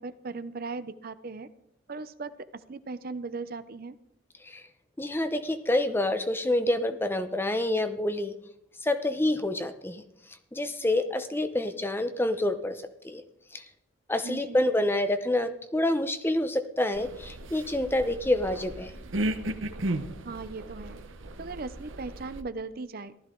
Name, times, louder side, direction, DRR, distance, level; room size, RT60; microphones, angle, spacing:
voice 1, 0.0-1.5 1.9-3.9 14.2-14.7 20.2-21.0 21.4-23.1, right 3 dB, 45° right, 13 dB, 0.6 m, -38 dB
voice 2, 5.0-8.4 8.8-10.0 10.5-13.2 13.5-13.6 14.1-18.9, left 1 dB, 10° left, 9 dB, 0.7 m, -27 dB
sound 1, 16.9-22.4, right 1 dB, 70° right, 0.9 m, -35 dB
15.5 x 13.0 x 3.8 m, 0.77 s
head